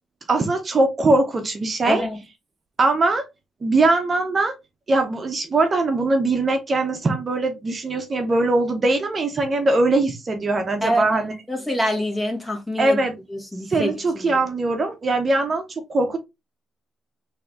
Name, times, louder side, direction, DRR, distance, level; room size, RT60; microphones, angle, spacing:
voice 1, 0.3-2.0 2.8-3.2 3.6-4.5 4.9-11.4 12.8-13.1 13.7-15.6 15.9-16.2, right 2 dB, 35° right, 0.8 m, -21 dB
voice 2, 1.9-2.2 10.8-11.2 11.5-13.0 13.5-13.9, equal, 15° left, 1.6 m, -24 dB
3.7 x 2.8 x 3.4 m
cardioid pair, 90°, 0 cm